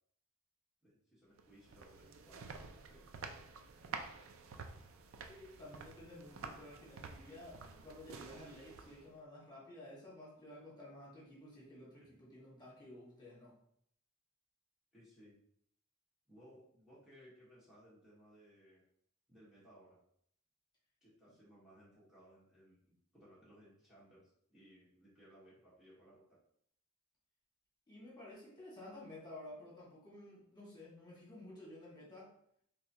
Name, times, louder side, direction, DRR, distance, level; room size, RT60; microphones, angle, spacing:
voice 1, 0.8-3.0 12.0-12.1 14.9-15.4 16.3-18.8 19.3-20.0 21.0-26.4, equal, 5° right, -10 dB, 1.3 m, -62 dB
sound 1, 1.4-9.2, right 5 dB, 70° right, 0.4 m, -50 dB
voice 2, 5.3-13.5 27.9-32.3, left 1 dB, 20° left, -6 dB, 1.6 m, -53 dB
4.0 x 3.4 x 2.8 m, 0.68 s
head